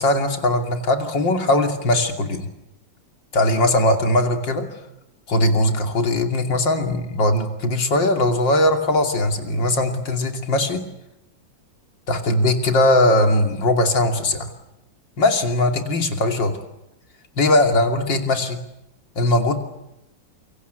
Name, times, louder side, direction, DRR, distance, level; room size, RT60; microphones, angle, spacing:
voice 1, 0.0-2.5 3.3-4.7 5.3-10.8 12.1-14.5 15.2-16.6 17.4-18.6 19.2-19.5, left 1 dB, 75° left, 5 dB, 3.5 m, -20 dB
27.5 x 24.5 x 8.2 m, 0.86 s
omnidirectional pair, 2.0 m